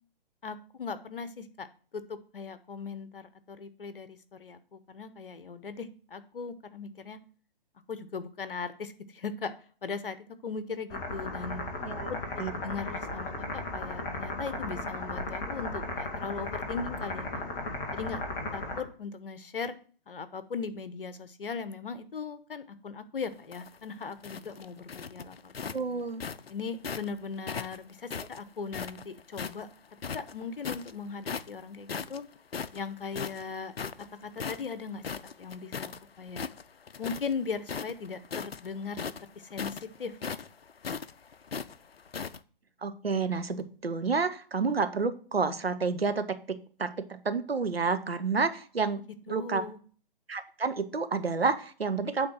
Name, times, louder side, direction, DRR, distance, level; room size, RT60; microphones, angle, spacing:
voice 1, 0.4-1.7 1.9-7.2 7.9-9.5 9.8-11.6 12.1-17.3 17.9-18.2 18.5-19.8 20.1-25.7 26.5-29.7 30.1-32.2 32.7-33.7 34.2-35.0 35.4-36.4 37.0-39.0 39.3-40.2 49.3-49.8, left 5 dB, 65° left, 12 dB, 1.0 m, -38 dB
sound 1, 10.9-18.8, left 2 dB, 5° left, 0.4 m, -36 dB
sound 2, 23.3-27.1 27.5-29.6 30.0-30.9 31.2-31.6 31.9-36.0 36.3-37.3 37.6-42.4, left 6 dB, 85° left, 0.5 m, -38 dB
voice 2, 25.7-26.2 28.2-28.3 42.8-49.6 50.3-52.3, right 4 dB, 85° right, 9 dB, 0.9 m, -30 dB
8.7 x 3.7 x 6.1 m, 0.42 s
figure-of-eight pair, 130°, 29 cm